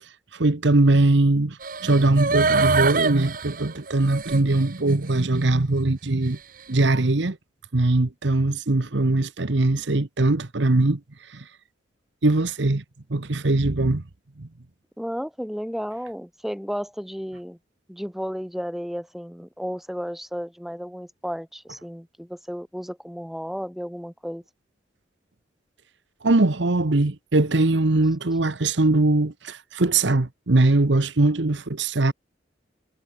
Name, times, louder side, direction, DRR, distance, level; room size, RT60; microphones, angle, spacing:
voice 1, 0.3-1.6 1.8-6.4 6.7-7.4 7.7-11.0 11.3-11.4 12.2-12.8 13.1-14.0 26.2-32.1, right 2 dB, 65° right, 1.1 m, -21 dB
sound 1, 1.6-4.7 5.1-5.2, right 4 dB, 45° right, 1.3 m, -24 dB
voice 2, 15.0-17.6 17.9-24.4, equal, ahead, 2.5 m, -33 dB
head